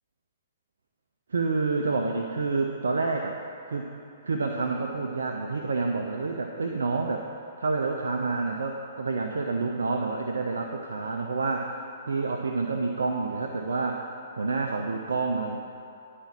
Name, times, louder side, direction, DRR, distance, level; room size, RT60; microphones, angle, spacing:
voice 1, 1.3-3.4 3.7-4.0 4.2-7.2 7.6-11.7 12.1-14.1 14.4-15.6, right 3 dB, 75° right, 2 dB, 0.6 m, -28 dB
10.5 x 4.2 x 7.3 m, 2.7 s
figure-of-eight pair, 115°, 0 cm